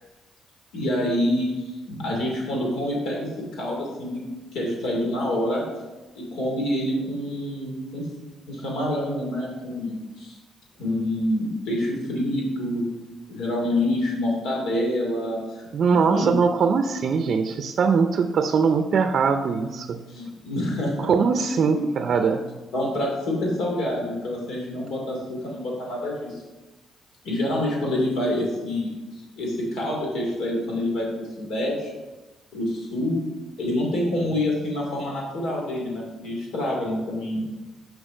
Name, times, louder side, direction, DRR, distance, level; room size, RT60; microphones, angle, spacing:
voice 1, 0.7-4.2 4.5-5.6 6.1-8.0 8.5-10.4 10.8-12.8 13.3-15.6 15.9-16.3 20.1-21.0 21.4-21.9 22.7-26.4 27.2-28.9 29.4-31.9 32.5-33.2 33.6-37.4, left 1 dB, 85° left, -2 dB, 2.5 m, -27 dB
voice 2, 15.7-20.0 21.0-22.4, right 5 dB, 55° right, 7 dB, 0.5 m, -21 dB
6.3 x 4.8 x 5.0 m, 1.1 s
cardioid pair, 90°, 0 cm